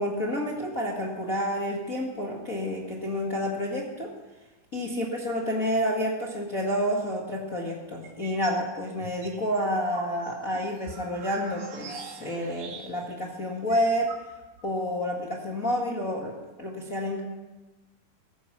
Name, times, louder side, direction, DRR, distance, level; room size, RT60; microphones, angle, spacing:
voice 1, 0.0-4.1 4.7-14.1 14.6-17.2, equal, 50° left, -2 dB, 0.9 m, -29 dB
sound 1, 8.0-8.6 9.0-13.2 13.4-13.5 13.7-14.7, right 5 dB, 70° right, 3.9 m, -43 dB
15.5 x 14.5 x 6.0 m, 1.1 s
omnidirectional pair, 4.7 m